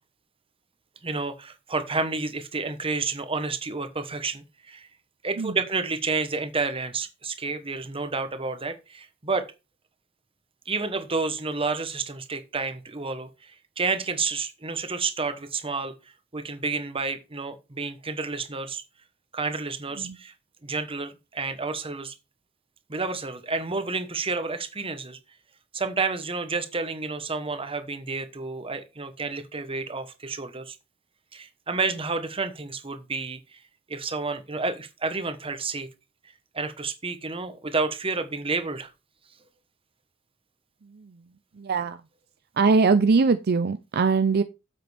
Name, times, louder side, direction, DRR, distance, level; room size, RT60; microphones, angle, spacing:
voice 1, 1.0-4.9 5.2-9.5 10.7-15.9 16.3-18.8 19.3-20.3 20.6-22.1 22.9-25.2 25.7-30.8 31.3-33.6 33.9-35.9 36.5-38.9, right 4 dB, 25° right, 1.2 m, -30 dB
voice 2, 41.6-42.0 42.6-44.4, right 4 dB, 50° right, 0.5 m, -22 dB
10.5 x 7.7 x 3.5 m
head